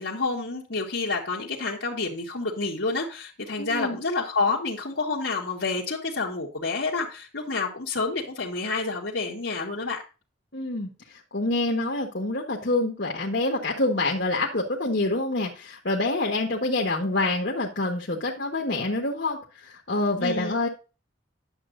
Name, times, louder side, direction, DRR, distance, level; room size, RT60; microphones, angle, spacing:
voice 1, 0.0-10.0 20.2-20.5, left 3 dB, 80° left, -3 dB, 1.8 m, -29 dB
voice 2, 3.6-4.0 10.5-10.9 11.3-20.7, left 2 dB, 60° left, -1 dB, 1.5 m, -26 dB
11.0 x 7.6 x 2.6 m, 0.33 s
head